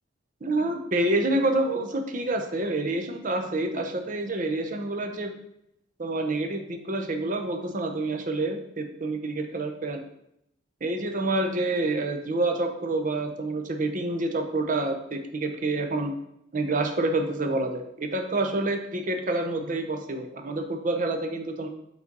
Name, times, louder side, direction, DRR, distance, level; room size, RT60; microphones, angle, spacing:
voice 1, 0.4-5.4 6.0-10.0 10.8-16.1 16.5-21.7, right 2 dB, 45° right, 5 dB, 0.8 m, -28 dB
5.6 x 4.0 x 5.3 m, 0.77 s
head